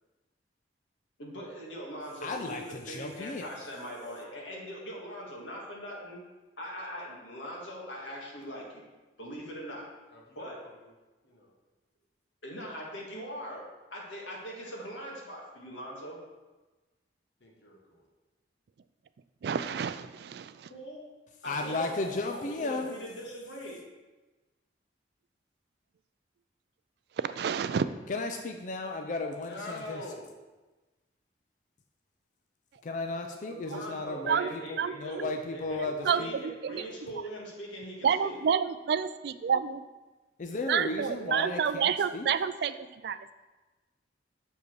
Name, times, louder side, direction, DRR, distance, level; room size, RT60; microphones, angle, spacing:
voice 1, 1.2-6.2 6.6-8.8 9.2-9.8 10.4-10.6 12.4-13.6 13.9-16.2 20.7-21.1 21.4-23.8 33.5-35.2 35.5-38.4, equal, 85° left, -4 dB, 1.9 m, -41 dB
voice 2, 2.2-3.5 21.5-23.0 28.1-30.0 32.8-36.3 40.4-42.3, left 3 dB, 45° left, 4 dB, 0.4 m, -35 dB
voice 3, 10.1-10.9 11.2-11.5 14.6-14.9 17.4-18.1 29.3-30.3 34.7-34.9, left 2 dB, 65° left, -2 dB, 1.5 m, -45 dB
voice 4, 19.4-20.7 27.2-27.9 34.3-34.5 34.8-35.3 36.0-36.8 38.0-39.8 40.7-43.3, right 7 dB, 60° right, 13 dB, 0.3 m, -29 dB
6.6 x 4.9 x 4.6 m, 1.2 s
head